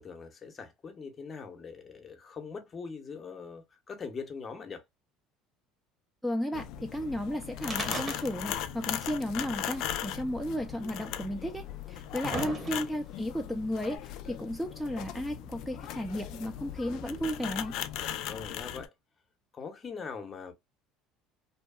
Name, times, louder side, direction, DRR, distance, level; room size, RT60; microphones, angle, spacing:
voice 1, 0.0-4.8 12.3-12.6 18.3-18.9 19.5-20.5, left 5 dB, 35° left, 0.8 m, -42 dB
voice 2, 6.2-17.8, equal, ahead, 0.5 m, -34 dB
sound 1, 6.5-18.9, left 11 dB, 65° left, 0.3 m, -38 dB
sound 2, 7.6-8.7 8.9-9.0 10.0-10.1 11.0-11.1 11.8-13.1 14.0-14.1, right 2 dB, 30° right, 1.0 m, -37 dB
2.7 x 2.2 x 2.2 m
supercardioid pair, 85°, 0 cm